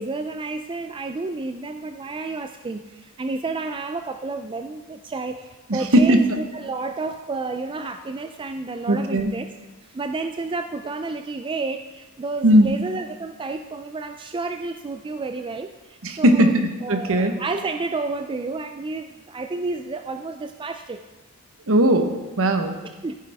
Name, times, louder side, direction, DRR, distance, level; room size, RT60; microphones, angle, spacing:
voice 1, 0.0-9.5 9.9-21.0 22.8-23.1, right 3 dB, 20° right, 7 dB, 0.4 m, -31 dB
voice 2, 5.7-6.4 8.9-9.3 12.4-12.7 16.0-17.3 21.7-22.7, right 1 dB, 65° right, 7 dB, 1.1 m, -18 dB
15.0 x 9.5 x 3.5 m, 1.2 s
head